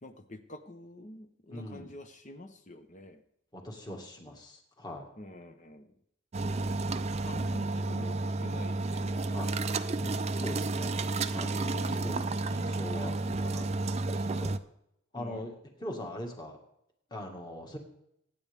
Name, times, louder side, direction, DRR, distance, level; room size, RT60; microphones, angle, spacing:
voice 1, 0.0-3.2 5.2-5.9 7.0-10.0 11.7-12.3 15.1-15.6, left 1 dB, 35° left, 7 dB, 0.9 m, -47 dB
voice 2, 1.5-1.9 3.5-5.1 9.3-9.6 10.0-11.0 11.3-14.5 15.1-15.5 15.8-16.6 17.1-17.8, left 1 dB, 20° left, 2 dB, 1.9 m, -42 dB
sound 1, 6.3-14.6, right 2 dB, 30° right, 0.5 m, -31 dB
24.5 x 9.5 x 3.6 m, 0.77 s
head